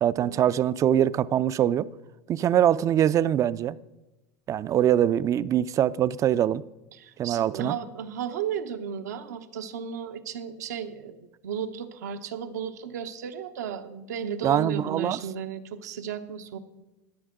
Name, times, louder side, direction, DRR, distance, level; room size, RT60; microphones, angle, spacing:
voice 1, 0.0-1.9 2.3-3.8 4.5-6.6 7.2-7.8 14.4-15.2, right 10 dB, 35° right, 0.4 m, -23 dB
voice 2, 6.9-16.6, right 8 dB, 85° right, 0.9 m, -34 dB
14.0 x 10.5 x 3.7 m
hypercardioid pair, 95°, 9 cm